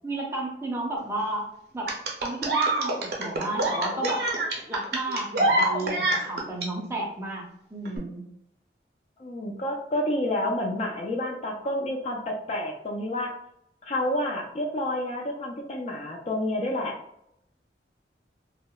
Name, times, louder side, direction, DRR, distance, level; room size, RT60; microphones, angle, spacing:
voice 1, 0.0-1.5 1.7-1.9 2.2-4.3 4.7-8.3, right 2 dB, 15° right, -1 dB, 0.5 m, -32 dB
sound 1, 1.9-6.7 7.9-8.0, right 2 dB, 60° right, 0.5 m, -26 dB
voice 2, 9.2-13.4 13.9-17.0, left 1 dB, 35° left, 1 dB, 0.3 m, -29 dB
2.8 x 2.0 x 2.2 m, 0.77 s
head